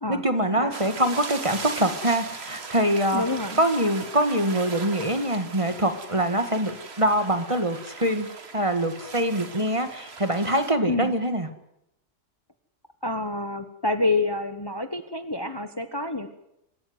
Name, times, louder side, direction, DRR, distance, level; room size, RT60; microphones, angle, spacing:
voice 1, 0.1-11.5, right 1 dB, 25° right, 8 dB, 1.7 m, -24 dB
sound 1, 0.7-10.7, right 4 dB, 55° right, 1.8 m, -39 dB
voice 2, 3.1-3.6 10.9-11.1 13.0-16.3, left 2 dB, 20° left, 9 dB, 1.1 m, -27 dB
25.0 x 13.0 x 9.5 m, 0.82 s
omnidirectional pair, 1.3 m